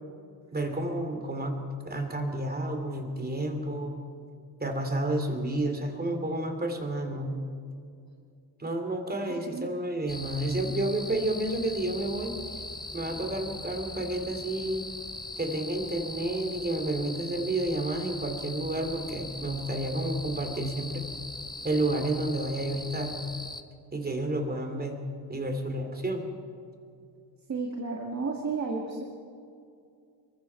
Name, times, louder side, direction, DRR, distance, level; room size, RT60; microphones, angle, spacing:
voice 1, 0.5-1.5 1.8-4.0 4.6-7.3 8.6-12.4 12.9-14.9 15.4-21.1 21.6-23.2 23.9-25.0 25.3-26.3, right 1 dB, 20° right, 4 dB, 2.9 m, -30 dB
sound 1, 10.1-23.6, left 2 dB, 10° left, 0.8 m, -40 dB
voice 2, 27.5-29.0, right 4 dB, 40° right, 0 dB, 2.1 m, -32 dB
26.5 x 23.0 x 4.7 m, 2.4 s
wide cardioid pair, 145°, 42 cm